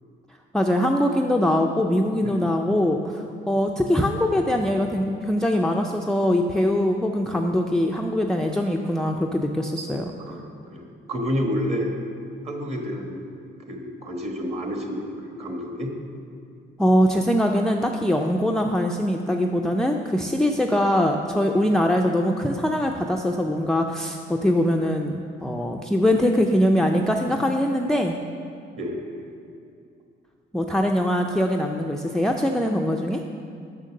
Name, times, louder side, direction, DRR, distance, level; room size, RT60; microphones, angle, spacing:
voice 1, 0.5-10.1 16.8-28.2 30.5-33.2, equal, 5° left, 2 dB, 0.4 m, -22 dB
voice 2, 10.2-12.0 12.4-13.3 13.7-15.9 28.8-29.2, equal, 30° right, 2 dB, 1.4 m, -30 dB
6.6 x 5.9 x 6.4 m, 2.4 s
cardioid pair, 90°, 20 cm